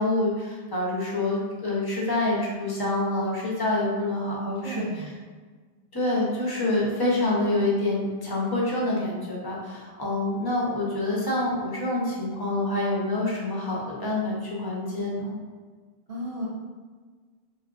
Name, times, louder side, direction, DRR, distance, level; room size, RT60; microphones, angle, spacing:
voice 1, 0.0-4.9 5.9-15.3, left 2 dB, 25° left, -5 dB, 0.6 m, -27 dB
voice 2, 4.3-5.1 5.8-5.9 16.1-16.5, right 1 dB, 65° right, -6 dB, 0.7 m, -35 dB
3.5 x 2.4 x 2.4 m, 1.4 s
omnidirectional pair, 1.0 m